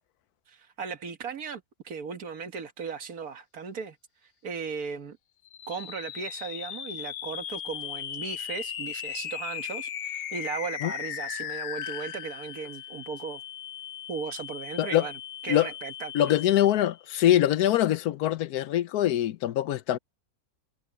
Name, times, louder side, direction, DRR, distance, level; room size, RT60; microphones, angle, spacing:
voice 1, 0.5-4.0 4.4-5.2 5.7-13.4 14.1-16.3, right 5 dB, 75° right, 1.9 m, -37 dB
sound 1, 5.4-17.0, left 10 dB, 65° left, 0.6 m, -38 dB
voice 2, 16.1-20.0, left 12 dB, 90° left, 1.2 m, -23 dB
omnidirectional pair, 1.6 m